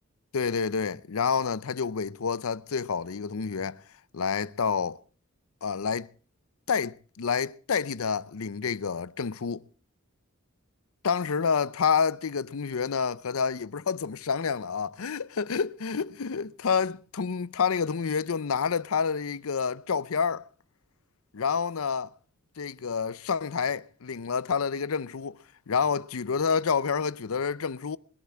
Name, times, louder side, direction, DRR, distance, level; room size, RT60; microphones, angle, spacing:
voice 1, 0.3-3.8 4.1-5.0 5.6-6.1 6.7-9.6 11.0-20.5 21.3-22.1 22.6-25.4 25.7-28.0, left 6 dB, 75° left, 0.6 m, -28 dB
20.5 x 12.0 x 4.5 m
head